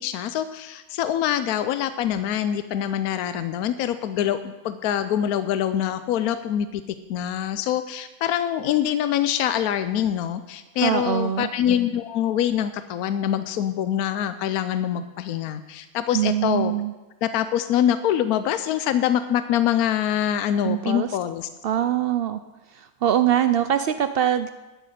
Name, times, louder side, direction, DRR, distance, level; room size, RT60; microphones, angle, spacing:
voice 1, 0.0-6.8 7.1-16.7 17.2-21.5, left 10 dB, 80° left, 11 dB, 1.1 m, -24 dB
voice 2, 10.8-11.5 16.1-16.9 20.6-21.1 21.6-22.4 22.7-24.5, right 10 dB, 85° right, 10 dB, 0.5 m, -23 dB
12.0 x 6.3 x 9.1 m, 1.1 s
omnidirectional pair, 1.6 m